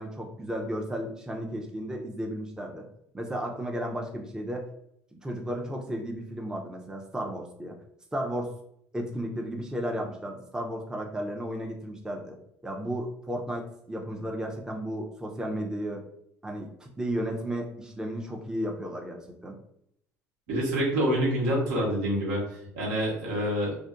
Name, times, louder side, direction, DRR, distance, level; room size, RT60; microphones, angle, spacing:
voice 1, 0.0-2.8 3.1-4.7 5.1-7.7 8.1-8.5 8.9-12.4 12.6-16.0 16.4-19.6, equal, 10° right, 1 dB, 0.5 m, -34 dB
voice 2, 20.5-23.8, equal, 75° right, -4 dB, 1.1 m, -27 dB
2.5 x 2.1 x 2.4 m, 0.73 s
hypercardioid pair, 70°, 7 cm